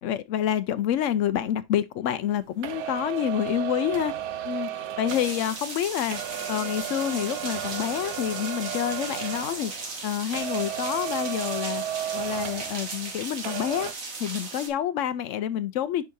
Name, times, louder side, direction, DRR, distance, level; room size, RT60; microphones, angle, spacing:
voice 1, 0.0-4.1 4.4-6.2 6.5-9.7 10.0-11.8 12.1-13.9 14.2-16.1, left 10 dB, 85° left, 0.6 m, -28 dB
sound 1, 2.6-10.1 10.3-13.2 13.4-13.9, right 10 dB, 70° right, 1.2 m, -34 dB
sound 2, 5.1-14.7, right 3 dB, 50° right, 2.0 m, -37 dB
10.0 x 4.8 x 2.6 m
omnidirectional pair, 1.9 m